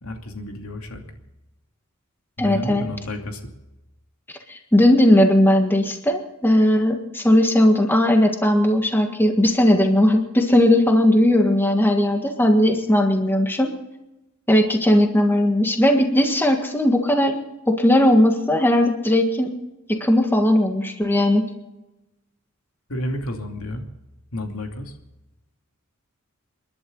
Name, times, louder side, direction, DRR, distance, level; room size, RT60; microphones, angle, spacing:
voice 1, 0.0-1.0 2.4-3.5 22.9-23.9 24.3-25.0, left 1 dB, 80° left, 3 dB, 2.7 m, -31 dB
voice 2, 2.4-2.8 4.5-13.7 14.5-19.5 19.9-21.4, left 1 dB, 10° left, 4 dB, 1.6 m, -18 dB
30.0 x 11.5 x 4.0 m, 0.99 s
head